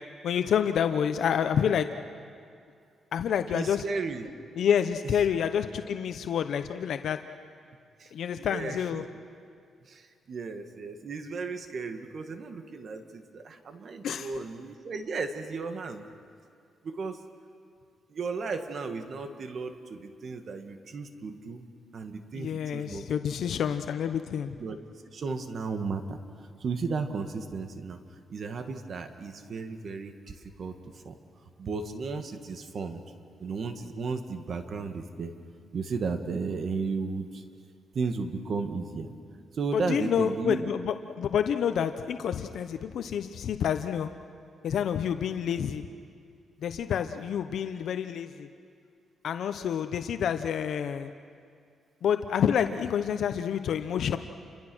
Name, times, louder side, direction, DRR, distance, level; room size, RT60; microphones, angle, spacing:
voice 1, 0.2-1.9 3.1-3.8 4.6-7.2 8.1-9.0 14.0-14.3 22.3-24.5 39.7-44.1 44.6-45.9 46.6-48.5 49.2-51.1 52.0-54.2, left 8 dB, 70° left, 8 dB, 0.8 m, -28 dB
voice 2, 3.5-4.3 8.0-9.0 9.9-16.1 16.8-17.2 18.1-21.7 21.9-23.1 24.6-24.8 25.1-26.2 26.6-28.0 28.3-30.8 31.0-31.2 31.6-33.0 33.4-35.3 35.7-37.4 37.9-39.1 39.5-40.7, right 4 dB, 50° right, 7 dB, 1.8 m, -34 dB
29.5 x 23.5 x 6.3 m, 2.4 s
cardioid pair, 115°, 0 cm